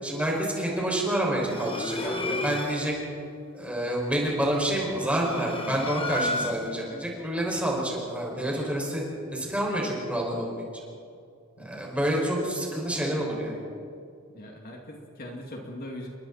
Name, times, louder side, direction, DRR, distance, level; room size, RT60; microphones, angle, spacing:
voice 1, 0.0-3.0 3.5-9.0 9.3-10.5 11.6-13.5, right 1 dB, 5° right, -3 dB, 5.7 m, -28 dB
sound 1, 1.4-3.0 4.8-6.9, left 2 dB, 25° left, 1.4 m, -33 dB
voice 2, 11.6-11.9 14.3-16.1, left 1 dB, 45° left, 0 dB, 2.4 m, -41 dB
29.5 x 23.5 x 4.3 m, 2.4 s
head